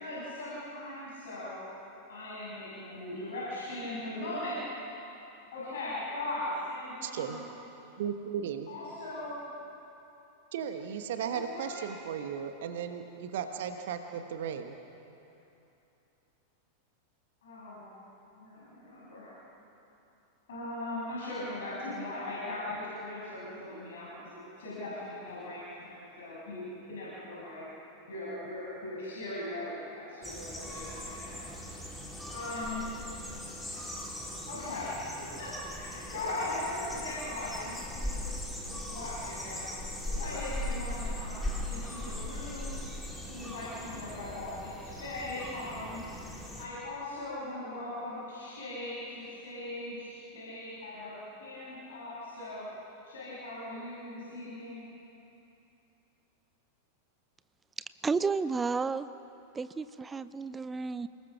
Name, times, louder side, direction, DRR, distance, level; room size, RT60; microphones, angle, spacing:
voice 1, 0.0-1.5 2.1-4.6 5.5-7.4 8.7-9.4 11.3-11.8 17.4-17.9 18.4-19.4 20.5-24.3 24.6-27.6 28.1-31.4 32.3-32.9 34.5-35.5 35.8-38.2 38.7-39.6 40.0-42.7 43.3-46.0 46.6-52.7 53.0-54.8, left 2 dB, 60° left, -8 dB, 7.3 m, -39 dB
voice 2, 7.0-7.4 8.0-8.7 10.5-14.8, right 8 dB, 55° right, 7 dB, 1.4 m, -36 dB
sound 1, 30.2-46.7, left 1 dB, 5° left, 4.1 m, -39 dB
voice 3, 58.0-59.1 59.5-61.1, right 4 dB, 15° right, 14 dB, 0.6 m, -31 dB
29.0 x 20.0 x 6.1 m, 2.9 s
figure-of-eight pair, 90°, 0 cm